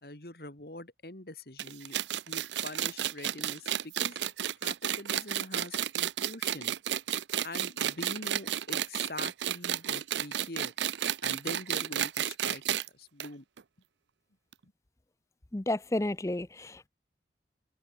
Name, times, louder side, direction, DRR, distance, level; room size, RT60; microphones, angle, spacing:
voice 1, 0.0-2.0 2.3-4.2 4.6-6.8 7.4-10.7 11.2-13.4, left 2 dB, 55° left, 2.9 m, -44 dB
sound 1, 1.6-12.9 13.2-13.3 13.6-13.7 14.5-14.6, right 10 dB, 80° right, 0.6 m, -32 dB
voice 2, 15.5-16.9, left 1 dB, 15° left, 0.5 m, -31 dB
head